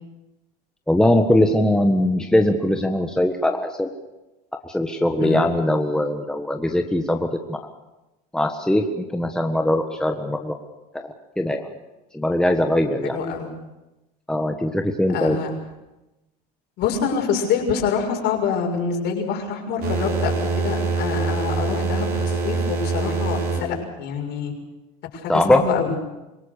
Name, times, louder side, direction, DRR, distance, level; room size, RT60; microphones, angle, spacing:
voice 1, 0.9-3.9 4.6-7.6 8.3-10.5 10.9-11.6 12.1-13.2 14.3-15.4 25.3-25.6, left 1 dB, 5° left, 4 dB, 1.5 m, -21 dB
voice 2, 13.0-13.5 15.1-15.6 16.8-24.5 25.1-26.0, left 6 dB, 60° left, 2 dB, 6.4 m, -26 dB
sound 1, 19.8-23.7, right 4 dB, 50° right, 5.7 m, -24 dB
26.5 x 17.5 x 6.8 m, 1.0 s
supercardioid pair, 105°, 21 cm